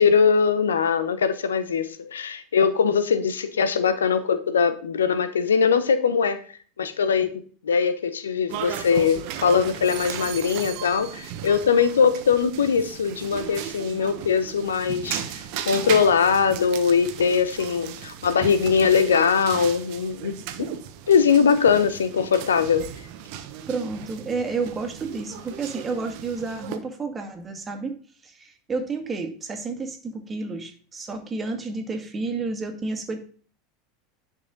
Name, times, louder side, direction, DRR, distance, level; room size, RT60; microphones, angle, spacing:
voice 1, 0.0-6.4 6.8-15.2 15.7-20.7 21.1-22.9, left 6 dB, 80° left, 13 dB, 0.8 m, -21 dB
sound 1, 8.5-26.8, right 10 dB, 60° right, 1.0 m, -36 dB
voice 2, 23.7-27.9 28.2-33.2, right 4 dB, 25° right, 5 dB, 2.1 m, -30 dB
10.5 x 5.6 x 3.9 m, 0.43 s
hypercardioid pair, 85°, 0 cm